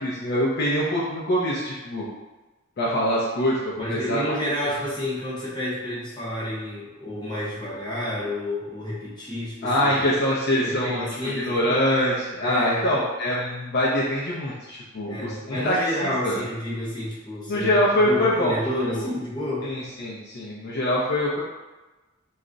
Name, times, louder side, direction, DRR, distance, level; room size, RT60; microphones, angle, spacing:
voice 1, 0.0-2.1 2.8-4.2 9.6-11.0 11.4-16.4 17.5-18.6 18.8-19.1 19.6-21.4, equal, 50° left, -6 dB, 0.5 m, -24 dB
voice 2, 3.8-9.9 10.6-11.8 12.4-12.9 15.0-17.8 18.0-19.7, left 1 dB, 20° left, -8 dB, 0.9 m, -30 dB
2.3 x 2.0 x 3.7 m, 1.1 s
head